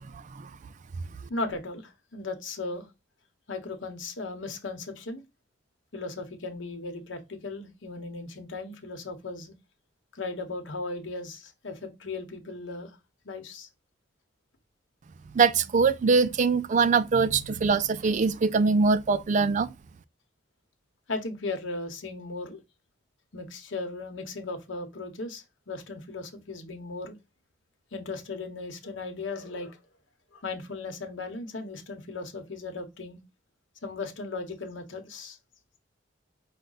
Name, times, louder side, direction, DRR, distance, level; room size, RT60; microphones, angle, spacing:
voice 1, 1.3-2.9 3.5-5.2 5.9-9.5 10.1-12.9 13.2-13.7 21.1-22.6 23.3-27.2 27.9-29.8 30.3-33.2 33.8-35.4, left 3 dB, 80° left, 1.0 m, -37 dB
voice 2, 15.3-19.7, right 4 dB, 40° right, 0.3 m, -23 dB
5.1 x 2.2 x 3.9 m
head